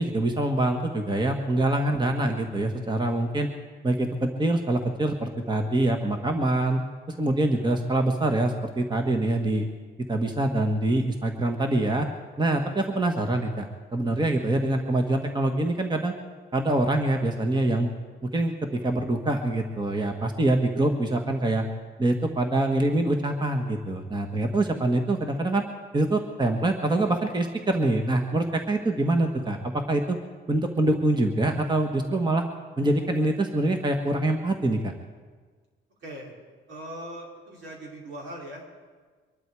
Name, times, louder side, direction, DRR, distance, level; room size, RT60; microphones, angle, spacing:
voice 1, 0.0-3.5 3.8-6.8 7.2-9.7 10.1-12.1 12.4-16.1 16.5-17.9 18.3-21.7 22.0-25.6 25.9-30.2 30.5-32.4 32.8-34.9, right 2 dB, 20° right, 4 dB, 1.5 m, -25 dB
voice 2, 36.0-36.3 36.7-38.8, right 1 dB, 75° right, -2 dB, 5.0 m, -40 dB
24.0 x 11.5 x 4.8 m, 1.5 s
cardioid pair, 90°, 20 cm